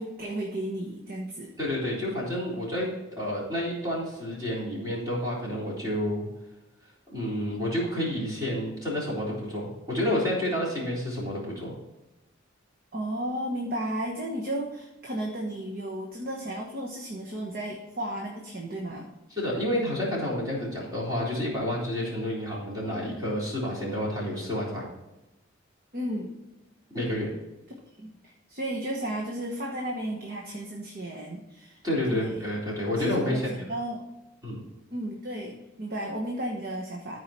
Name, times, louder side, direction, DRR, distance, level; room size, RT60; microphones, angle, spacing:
voice 1, 0.0-1.5 12.9-19.1 25.9-26.4 28.0-32.4 33.0-33.4 33.7-34.0 34.9-37.2, right 1 dB, 45° right, -1 dB, 1.2 m, -34 dB
voice 2, 1.6-6.3 7.1-11.7 19.3-24.8 26.9-27.3 31.8-33.7 34.4-34.6, left 1 dB, 20° right, -6 dB, 3.7 m, -29 dB
13.5 x 4.7 x 4.3 m, 1.0 s
head